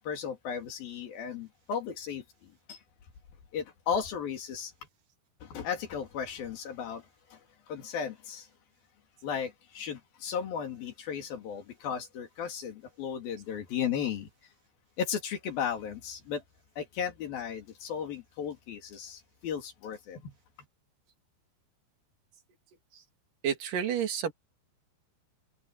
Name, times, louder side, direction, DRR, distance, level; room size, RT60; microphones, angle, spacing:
voice 1, 0.0-2.8 3.5-4.7 5.4-8.5 9.2-14.5 15.0-16.4 16.8-20.3, left 7 dB, 60° left, 4.4 m, -35 dB
voice 2, 23.4-24.3, right 8 dB, 55° right, 4.0 m, -30 dB
omnidirectional pair, 4.9 m